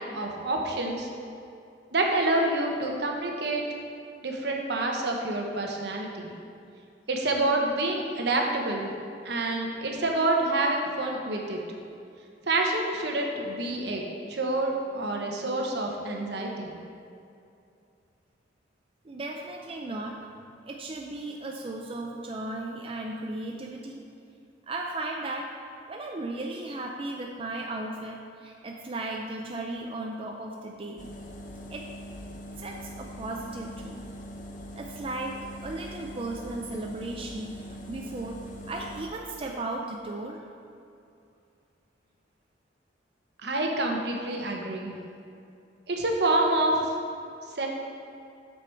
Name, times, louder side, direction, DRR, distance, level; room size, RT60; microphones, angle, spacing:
voice 1, 0.1-1.1 1.9-3.6 4.2-6.4 7.1-8.9 9.2-11.6 12.5-14.0 14.3-16.8 43.4-44.9 45.9-46.9 47.5-47.7, right 2 dB, 70° right, 1 dB, 1.1 m, -27 dB
voice 2, 19.0-20.2 20.7-24.0 24.7-25.5 25.9-31.1 31.7-31.9 32.6-34.1 34.7-40.4, right 2 dB, 30° right, 0 dB, 0.5 m, -36 dB
sound 1, 31.0-39.1, equal, 50° left, 0.8 m, -42 dB
6.9 x 6.4 x 4.6 m, 2.5 s
head